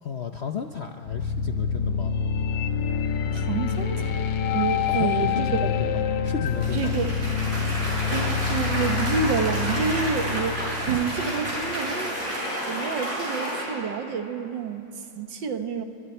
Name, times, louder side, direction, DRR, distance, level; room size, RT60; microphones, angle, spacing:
voice 1, 0.0-2.2 4.9-6.9, left 7 dB, 60° left, 5 dB, 0.7 m, -33 dB
sound 1, 1.0-12.0, left 6 dB, 85° left, 1.6 m, -27 dB
voice 2, 3.3-4.2 4.5-5.7 6.7-7.1 8.1-12.4 12.7-15.8, right 6 dB, 85° right, 7 dB, 1.9 m, -29 dB
Cheering / Applause, 6.4-13.6, equal, 50° right, 6.5 m, -30 dB
29.5 x 23.5 x 4.4 m, 2.8 s
omnidirectional pair, 1.9 m